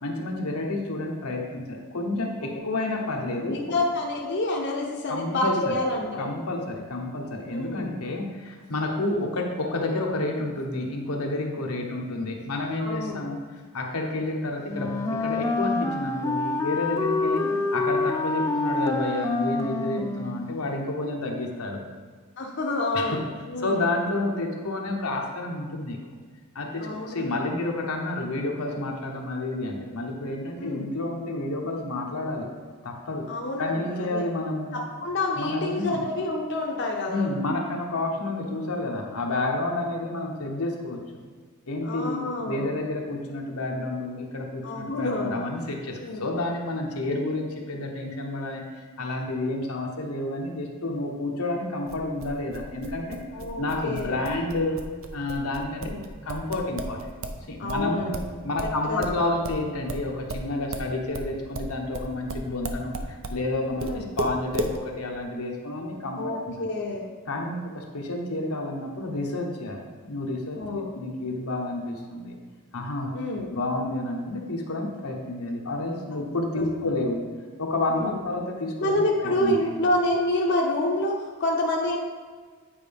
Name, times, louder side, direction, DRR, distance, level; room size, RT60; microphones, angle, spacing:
voice 1, 0.0-3.6 5.1-5.7 6.2-13.4 13.7-17.4 17.7-21.8 22.9-23.2 23.6-26.0 26.5-32.5 32.8-33.3 33.6-34.8 35.4-36.0 37.1-41.2 41.7-42.2 42.5-53.2 53.6-54.8 55.1-55.9 56.2-57.1 57.5-58.1 58.4-63.8 64.2-66.7 67.3-72.4 72.7-73.1 73.5-77.2 77.6-79.5, left 2 dB, 85° left, 1 dB, 1.0 m, -30 dB
voice 2, 2.4-3.0 3.4-6.3 7.5-8.0 12.8-13.2 17.2-17.6 22.4-23.9 26.8-27.3 30.6-30.9 33.3-34.3 34.7-37.3 41.8-42.7 44.6-45.4 46.0-46.3 53.3-54.2 55.7-56.0 57.6-58.2 58.6-59.1 63.8-64.1 66.1-67.0 70.5-70.9 73.1-73.5 76.5-76.6 77.9-78.2 78.8-82.0, left 1 dB, 50° left, -1 dB, 0.7 m, -28 dB
Wind instrument woodwind instrument, 14.7-20.6, left 3 dB, 15° left, 0.3 m, -27 dB
sound 1, 51.9-57.4 57.7-63.4 63.8-64.8, right 2 dB, 65° right, 0.6 m, -34 dB
9.0 x 4.8 x 3.5 m, 1.6 s
head